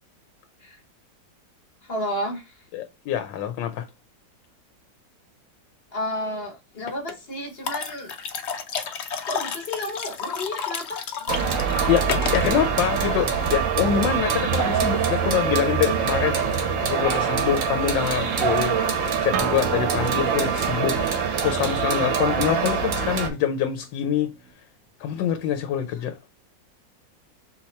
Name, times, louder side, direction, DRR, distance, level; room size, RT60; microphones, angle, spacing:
voice 1, 1.8-2.7 5.9-8.1 9.2-11.1 25.9-26.0, left 1 dB, 40° left, 1.0 m, -32 dB
voice 2, 2.7-3.9 11.9-18.8 19.2-21.0 21.4-24.3 25.0-26.2, left 9 dB, 80° left, 1.3 m, -25 dB
sound 1, 6.9-7.1 7.7-12.5, left 6 dB, 60° left, 0.7 m, -30 dB
sound 2, 11.3-23.3, right 6 dB, 85° right, 1.8 m, -24 dB
Acoustic guitar, 19.3-24.5, right 7 dB, 65° right, 1.1 m, -35 dB
4.2 x 2.9 x 4.3 m
omnidirectional pair, 2.0 m